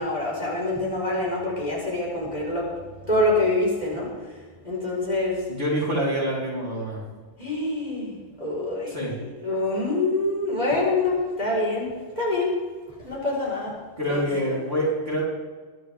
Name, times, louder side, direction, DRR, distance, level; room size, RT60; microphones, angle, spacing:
voice 1, 0.0-2.7 3.1-4.3 4.6-5.5 7.4-11.9 12.2-12.6 13.0-13.8 14.1-14.6, left 2 dB, 30° left, -5 dB, 4.9 m, -26 dB
voice 2, 5.5-7.0 8.9-9.1 14.0-15.2, equal, 45° right, -6 dB, 4.2 m, -26 dB
22.5 x 11.0 x 3.6 m, 1.5 s
omnidirectional pair, 1.3 m